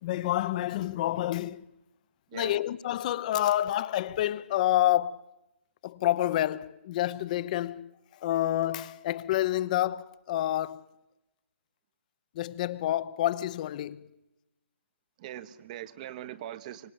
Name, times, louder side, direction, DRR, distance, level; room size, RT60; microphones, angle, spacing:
voice 1, 0.0-1.6 2.3-5.2 5.8-10.8 12.3-14.1, left 13 dB, 40° left, 0.9 m, -28 dB
voice 2, 2.3-2.6 15.2-16.9, right 12 dB, 35° right, 1.2 m, -41 dB
24.5 x 18.0 x 8.8 m
figure-of-eight pair, 140°, 7 cm